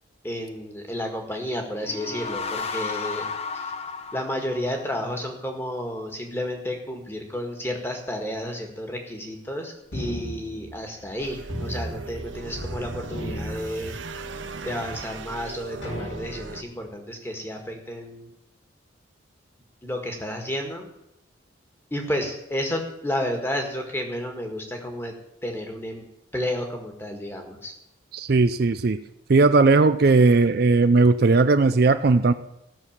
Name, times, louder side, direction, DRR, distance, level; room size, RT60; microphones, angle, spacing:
voice 1, 0.2-3.3 3.5-3.7 4.1-14.0 14.6-18.3 19.8-20.9 21.9-25.1 25.4-26.0 26.3-27.7, left 1 dB, 10° left, 3 dB, 1.7 m, -31 dB
sound 1, 1.7-5.2, left 4 dB, 30° left, 0.8 m, -33 dB
sound 2, 9.9-11.2 11.5-12.8 13.0-14.4 14.9-15.0 15.8-16.7, equal, 65° left, 3.1 m, -35 dB
sound 3, 11.2-16.6, right 4 dB, 70° right, 0.8 m, -38 dB
voice 2, 28.1-29.0 29.3-32.3, right 3 dB, 50° right, 11 dB, 0.4 m, -18 dB
15.5 x 6.3 x 7.3 m, 0.85 s
head